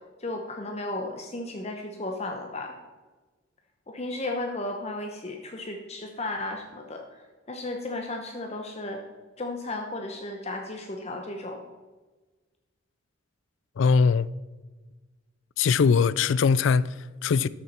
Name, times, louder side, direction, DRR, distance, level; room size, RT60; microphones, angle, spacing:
voice 1, 0.2-2.8 3.9-9.0 9.4-11.6, left 2 dB, 30° left, 0.9 m, -34 dB
voice 2, 13.8-14.3 15.6-17.5, left 5 dB, 65° left, 0.3 m, -21 dB
13.0 x 6.9 x 4.4 m
head